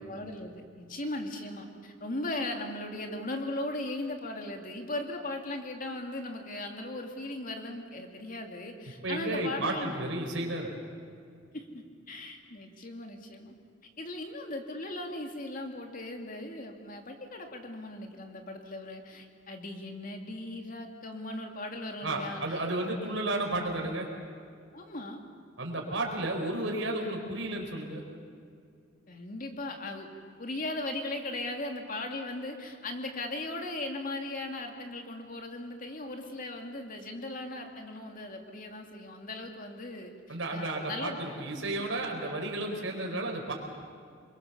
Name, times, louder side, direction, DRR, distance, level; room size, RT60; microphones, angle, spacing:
voice 1, 0.0-10.0 11.5-13.6 14.0-22.6 22.9-23.1 24.7-25.2 29.1-30.1 30.4-41.2, left 2 dB, 45° left, 3 dB, 2.6 m, -38 dB
voice 2, 9.0-10.7 22.0-24.1 25.6-28.0 40.3-43.5, right 2 dB, 80° right, 1 dB, 4.3 m, -32 dB
27.5 x 22.5 x 7.0 m, 2.3 s
head